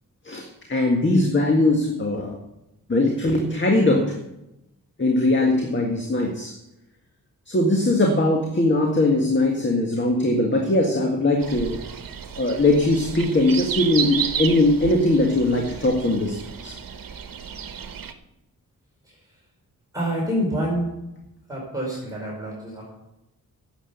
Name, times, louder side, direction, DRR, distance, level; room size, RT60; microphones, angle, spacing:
voice 1, 0.3-2.4 2.9-4.1 5.0-6.5 7.5-11.8 12.4-16.4 16.6-16.7, left 2 dB, 30° left, 2 dB, 1.9 m, -20 dB
sound 1, 11.4-18.1, right 7 dB, 75° right, 1.1 m, -32 dB
voice 2, 19.9-20.9 21.5-22.9, equal, 10° right, -5 dB, 4.9 m, -27 dB
10.5 x 8.0 x 8.1 m, 0.89 s
wide cardioid pair, 90°, 35 cm